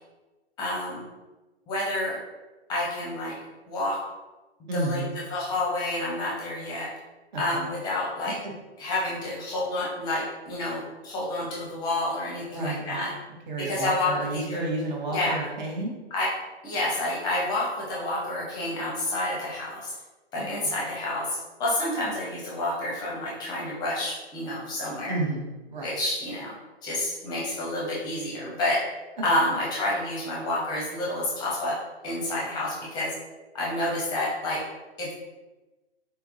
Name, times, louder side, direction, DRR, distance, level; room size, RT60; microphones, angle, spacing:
voice 1, 0.6-1.1 1.7-2.2 2.7-3.4 3.7-4.0 4.7-5.0 5.3-6.9 7.4-8.4 8.8-13.1 13.6-14.7 15.1-15.4 16.1-16.3 16.6-19.9 20.3-25.2 25.8-26.5 26.8-28.8 29.2-31.8 32.0-33.1 33.5-34.6 35.0-35.1, left 1 dB, 10° left, -5 dB, 0.8 m, -29 dB
voice 2, 4.7-5.2 7.3-7.7 8.2-8.3 12.5-13.1 13.5-15.9 20.4-20.7 25.1-25.9 29.2-29.3, right 2 dB, 45° right, -1 dB, 1.1 m, -31 dB
4.1 x 3.5 x 2.5 m, 1.1 s
figure-of-eight pair, 125°, 33 cm